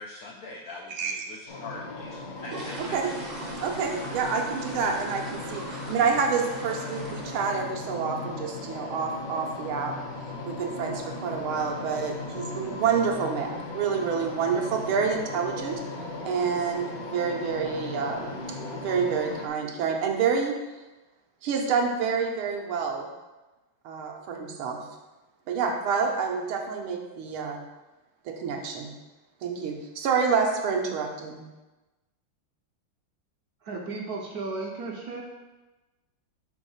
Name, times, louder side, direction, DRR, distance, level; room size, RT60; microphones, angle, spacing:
voice 1, 0.0-3.0, left 3 dB, 85° left, 0 dB, 0.7 m, -42 dB
sound 1, 1.5-19.5, left 2 dB, 55° left, 1.1 m, -37 dB
sound 2, 2.0-7.9 8.2-8.5 8.8-8.9 9.3-9.4 9.8-10.0 10.3-10.4 11.0-11.1 11.3-11.5 12.0-12.3 12.6-12.7 13.1-13.3 13.6-13.7 14.1-14.2 14.8-15.2 15.5-15.8 16.2-16.3 16.7-16.8 17.5-17.7 18.1-18.6 19.0-19.1, right 2 dB, 40° right, 0.6 m, -41 dB
voice 2, 2.8-3.1 3.6-9.9 10.5-15.8 16.2-18.3 18.7-20.6 21.4-23.1 23.9-24.8 25.5-27.6 28.3-28.9 29.4-31.4, right 6 dB, 80° right, 2 dB, 1.7 m, -28 dB
voice 3, 33.6-35.2, right 3 dB, 65° right, 0 dB, 1.0 m, -34 dB
5.7 x 3.5 x 5.5 m, 1.1 s
omnidirectional pair, 2.3 m